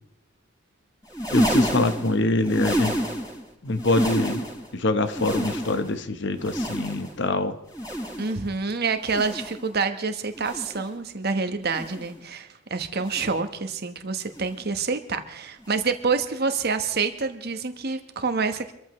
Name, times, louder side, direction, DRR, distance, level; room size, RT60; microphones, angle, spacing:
sound 1, 1.0-3.4 3.7-4.7 5.0-6.0 6.4-7.2 7.7-8.4 9.0-9.7 10.3-10.9 11.6-12.2 13.0-13.4 14.3-14.6 15.6-15.8 17.0-17.1, equal, 15° left, 5.0 m, -29 dB
voice 1, 1.3-3.0 3.6-4.5 4.7-7.6, left 2 dB, 55° left, 9 dB, 1.1 m, -24 dB
voice 2, 8.2-18.7, right 4 dB, 50° right, 8 dB, 1.2 m, -27 dB
26.5 x 14.0 x 3.2 m, 0.82 s
head